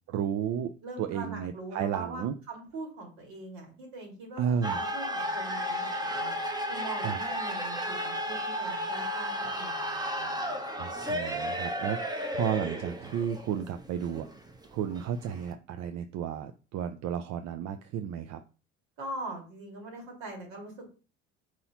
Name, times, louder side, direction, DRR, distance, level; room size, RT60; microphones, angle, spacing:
voice 1, 0.1-0.7 1.0-2.3 4.4-4.8 7.0-7.2 10.8-12.1 12.3-14.3 14.7-18.4, right 8 dB, 50° right, 8 dB, 0.5 m, -32 dB
voice 2, 0.8-6.3 6.7-10.5 19.0-20.9, right 2 dB, 70° right, 0 dB, 2.2 m, -42 dB
sound 1, 4.6-15.5, equal, 10° right, 0.8 m, -33 dB
4.4 x 3.9 x 2.9 m, 0.34 s
hypercardioid pair, 70°, 33 cm